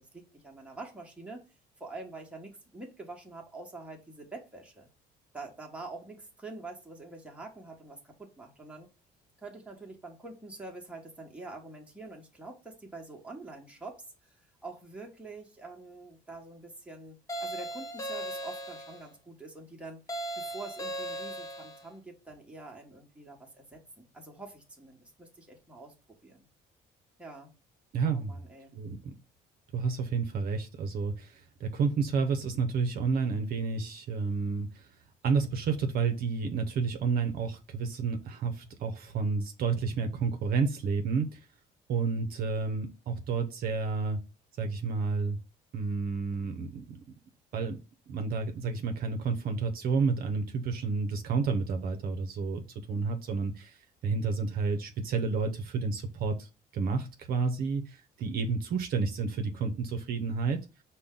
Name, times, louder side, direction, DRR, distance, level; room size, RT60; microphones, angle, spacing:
voice 1, 0.0-1.5 1.8-4.9 5.3-8.9 9.4-25.9 26.2-26.5 27.2-27.5 28.1-28.7, right 3 dB, 5° right, 0 dB, 1.2 m, -46 dB
sound 1, 17.3-19.1 20.1-21.9, right 1 dB, 20° left, 0.8 m, -37 dB
voice 2, 27.9-28.4 28.7-29.1 29.7-34.9 35.2-41.5 41.9-44.2 44.6-45.4 45.7-47.0 47.5-47.8 48.1-60.6, right 4 dB, 60° right, 5 dB, 0.7 m, -30 dB
5.3 x 2.2 x 3.7 m, 0.32 s
cardioid pair, 110°, 17 cm